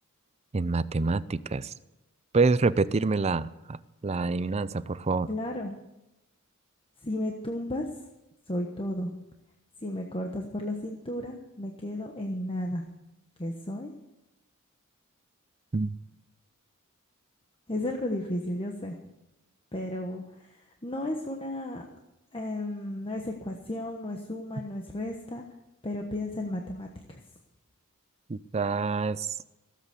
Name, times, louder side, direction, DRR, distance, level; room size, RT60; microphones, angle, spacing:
voice 1, 0.5-1.7 2.3-3.8 4.0-5.3 15.7-15.9 28.3-29.3, right 3 dB, 30° right, 16 dB, 0.5 m, -26 dB
voice 2, 5.3-5.8 7.0-7.8 8.5-9.1 9.8-12.8 13.4-13.9 17.7-19.0 19.7-21.8 22.3-25.4 25.8-27.2, left 1 dB, 25° left, 2 dB, 1.2 m, -33 dB
16.0 x 8.2 x 8.4 m, 0.96 s
head